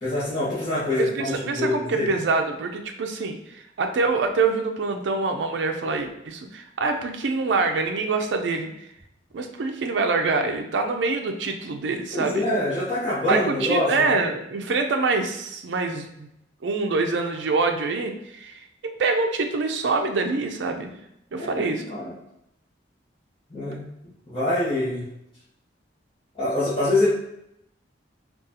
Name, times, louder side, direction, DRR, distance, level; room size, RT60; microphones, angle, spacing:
voice 1, 0.0-2.1 12.1-14.0 21.4-22.1 23.5-23.8 24.3-25.1 26.3-27.1, left 1 dB, 25° left, -12 dB, 0.9 m, -25 dB
voice 2, 1.0-3.4 3.8-8.7 9.3-12.6 13.3-16.3 16.6-20.9 21.3-21.8, right 3 dB, 75° right, 4 dB, 0.4 m, -25 dB
3.8 x 2.4 x 2.7 m, 0.79 s
head